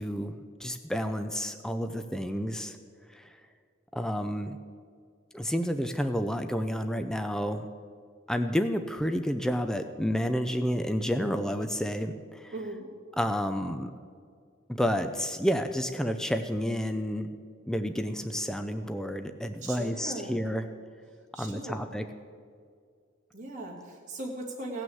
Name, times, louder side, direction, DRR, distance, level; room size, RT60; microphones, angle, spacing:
voice 1, 0.0-2.8 3.1-3.2 3.9-4.6 5.3-7.7 8.3-12.5 13.2-13.9 14.7-17.3 17.7-20.7 21.4-22.1, equal, 5° left, 7 dB, 0.4 m, -30 dB
voice 2, 12.5-12.9 19.6-20.4 21.3-21.8 23.3-24.8, right 2 dB, 40° right, -2 dB, 2.4 m, -38 dB
17.0 x 6.2 x 7.8 m, 2.1 s
head